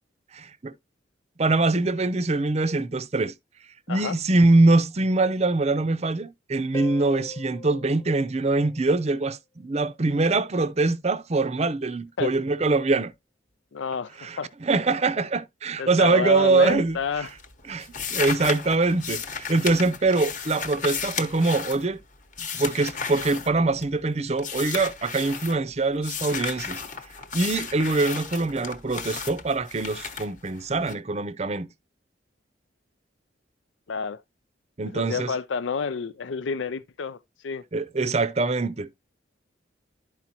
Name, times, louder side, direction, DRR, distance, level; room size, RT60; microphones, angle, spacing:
voice 1, 0.3-0.7 1.4-3.3 3.9-13.1 14.2-17.3 17.7-22.0 22.4-26.8 27.3-31.7 34.8-35.3 37.7-38.9, right 3 dB, 35° right, 0.6 m, -23 dB
Harp, 6.7-9.2 12.7-12.8, left 3 dB, 15° left, 0.8 m, -41 dB
voice 2, 13.7-14.1 14.4-14.5 15.8-17.3 33.9-34.2 34.9-37.2 37.4-37.6, left 5 dB, 80° left, 0.5 m, -29 dB
sound 1, 16.6-17.0 17.3-24.0 24.4-25.6 26.0-30.9, left 6 dB, 40° left, 1.0 m, -34 dB
12.0 x 4.8 x 2.8 m
head